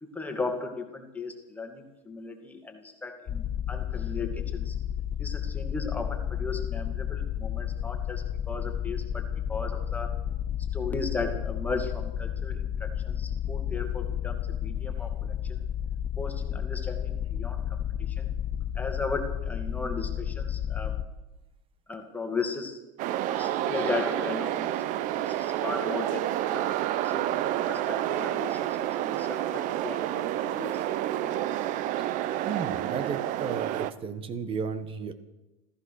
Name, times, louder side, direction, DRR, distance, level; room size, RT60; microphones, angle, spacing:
voice 1, 0.0-4.8 5.2-10.1 10.7-15.6 16.2-18.3 18.7-21.0 21.9-22.8 23.3-24.8 25.1-26.7 27.0-30.8, left 3 dB, 10° left, 4 dB, 2.4 m, -36 dB
sound 1, 3.3-21.1, left 9 dB, 30° left, 0.7 m, -32 dB
sound 2, 23.0-33.9, right 13 dB, 50° right, 0.8 m, -29 dB
voice 2, 32.4-35.1, right 6 dB, 35° right, 12 dB, 1.5 m, -34 dB
14.5 x 14.5 x 6.6 m, 1.0 s
supercardioid pair, 125°, 17 cm